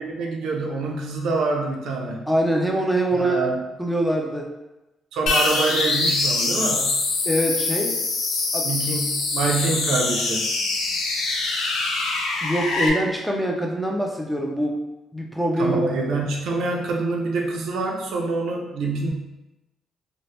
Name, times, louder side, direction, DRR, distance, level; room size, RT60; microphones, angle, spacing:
voice 1, 0.0-2.3 3.1-3.6 5.1-7.0 8.6-10.5 15.6-19.1, right 3 dB, 80° right, 0 dB, 0.5 m, -26 dB
voice 2, 2.3-3.4 3.8-4.5 7.2-8.0 8.5-8.7 12.4-14.8 15.1-15.9, right 1 dB, ahead, 0 dB, 0.5 m, -23 dB
sound 1, 5.3-12.9, left 3 dB, 85° left, 0.4 m, -24 dB
2.7 x 2.1 x 3.1 m, 0.98 s
cardioid pair, 90°, 0 cm